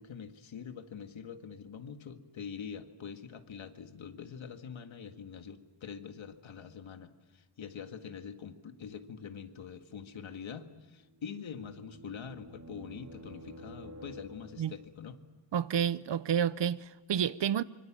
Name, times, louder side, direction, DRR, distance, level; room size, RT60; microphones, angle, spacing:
voice 1, 0.0-15.2, left 7 dB, 70° left, 1.9 m, -45 dB
sound 1, 10.9-14.9, right 1 dB, 35° right, 3.9 m, -50 dB
voice 2, 15.5-17.6, right 8 dB, 60° right, 0.8 m, -30 dB
25.5 x 24.5 x 7.5 m
wide cardioid pair, 165°, 49 cm